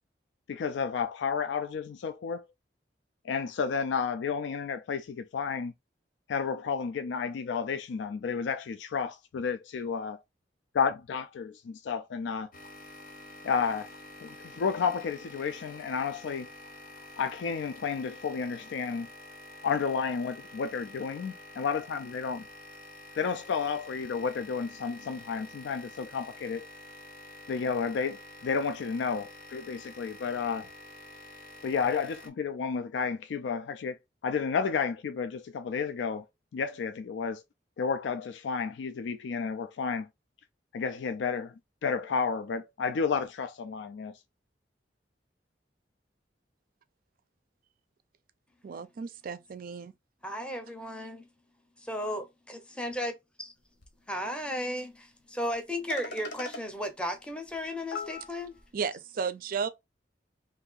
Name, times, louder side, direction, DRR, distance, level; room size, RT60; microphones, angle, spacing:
voice 1, 0.5-2.4 3.2-5.7 6.3-10.2 10.7-12.5 13.4-13.9 14.2-16.5 17.2-19.1 19.6-22.5 23.2-26.7 27.5-30.7 31.6-34.0 34.2-36.3 36.5-37.4 37.8-40.1 40.7-41.5 41.8-44.2, left 5 dB, 90° left, 0.4 m, -31 dB
sound 1, 12.5-32.3, left 1 dB, 50° left, 0.7 m, -48 dB
voice 2, 48.6-49.9 58.7-59.7, right 6 dB, 55° right, 0.4 m, -34 dB
voice 3, 50.2-51.3 51.8-53.1 53.4-53.5 54.1-58.6, equal, 5° left, 0.6 m, -35 dB
sound 2, 53.8-53.9 54.3-54.4 55.5-55.6 55.9-56.6 57.5-57.6 57.9-58.6, left 4 dB, 70° left, 0.9 m, -39 dB
2.7 x 2.6 x 3.8 m
head